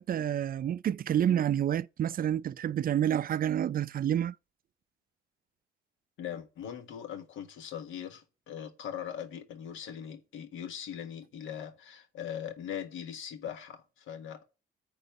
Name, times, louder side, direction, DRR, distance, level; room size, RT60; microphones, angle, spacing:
voice 1, 0.0-4.3, right 10 dB, 45° right, 0.4 m, -29 dB
voice 2, 6.2-14.4, left 9 dB, 80° left, 1.5 m, -40 dB
9.6 x 3.9 x 5.5 m
cardioid pair, 90°, 20 cm